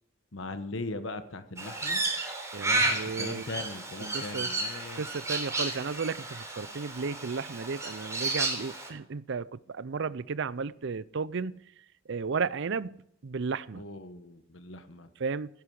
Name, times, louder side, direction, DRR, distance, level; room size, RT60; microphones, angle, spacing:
voice 1, 0.3-2.0 2.7-5.1 13.7-15.1, left 2 dB, 70° left, 1.3 m, -39 dB
Crow, 1.6-8.9, right 2 dB, 15° right, 3.6 m, -32 dB
voice 2, 2.5-3.4 4.1-4.5 5.0-11.6 12.1-13.8 15.2-15.5, right 5 dB, 65° right, 0.6 m, -34 dB
16.5 x 10.5 x 4.9 m
head